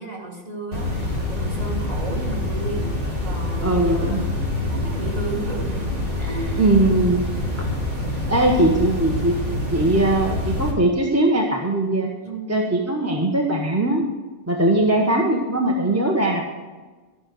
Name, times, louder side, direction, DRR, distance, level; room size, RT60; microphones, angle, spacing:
voice 1, 0.0-2.9 3.2-4.3 4.6-6.7 12.2-12.6 14.8-15.2, right 3 dB, 35° right, -3 dB, 2.7 m, -33 dB
sound 1, 0.7-10.7, left 1 dB, 50° right, 2.7 m, -26 dB
voice 2, 3.6-4.2 6.6-7.3 7.6-7.7 8.3-9.4 9.7-12.1 12.5-14.0 14.5-16.5, right 1 dB, 15° right, 0 dB, 1.1 m, -20 dB
12.0 x 6.3 x 7.9 m, 1.3 s
omnidirectional pair, 1.2 m